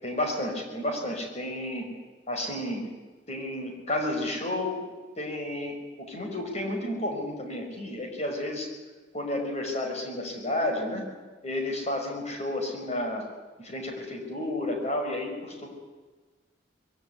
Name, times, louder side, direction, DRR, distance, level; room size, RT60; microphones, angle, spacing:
voice 1, 0.0-1.9 2.3-2.9 3.3-4.8 5.2-8.7 9.1-11.0 11.4-13.3 13.6-15.7, left 1 dB, 35° left, 2 dB, 5.5 m, -31 dB
21.5 x 17.0 x 9.6 m, 1.3 s
head